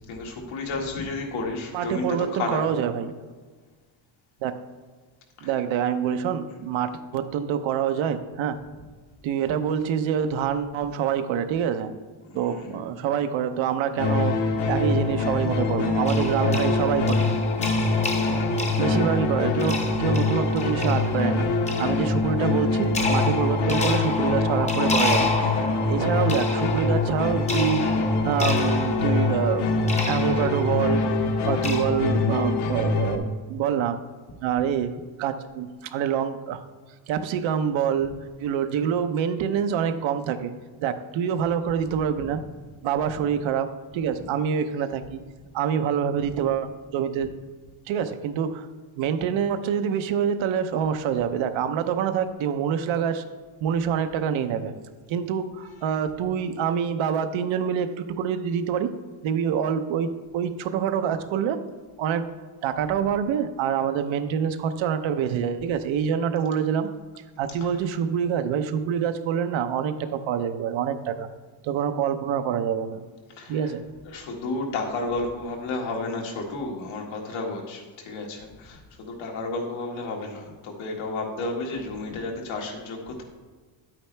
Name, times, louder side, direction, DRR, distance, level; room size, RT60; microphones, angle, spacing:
voice 1, 0.1-2.6 5.4-5.6 12.3-12.8 55.6-55.9 67.6-67.8 73.4-73.7 74.0-83.2, left 3 dB, 80° left, 0 dB, 2.0 m, -32 dB
voice 2, 1.7-3.2 4.4-4.6 5.4-8.6 9.2-11.9 12.3-17.3 18.8-21.5 21.8-27.9 28.2-31.0 31.4-34.0 34.4-36.6 37.1-38.1 38.4-40.5 40.8-42.4 42.8-45.2 45.5-47.3 47.9-48.7 49.0-53.3 53.6-54.7 55.1-59.0 59.2-61.6 62.0-62.3 62.6-66.9 67.4-71.3 71.6-73.0 73.5-73.8, right 8 dB, 80° right, 9 dB, 0.8 m, -26 dB
sound 1, 14.0-33.2, left 3 dB, 60° left, 1.1 m, -24 dB
sound 2, 16.1-31.8, left 2 dB, 15° left, 0.7 m, -31 dB
10.0 x 8.7 x 3.3 m, 1.4 s
cardioid pair, 175°, 46 cm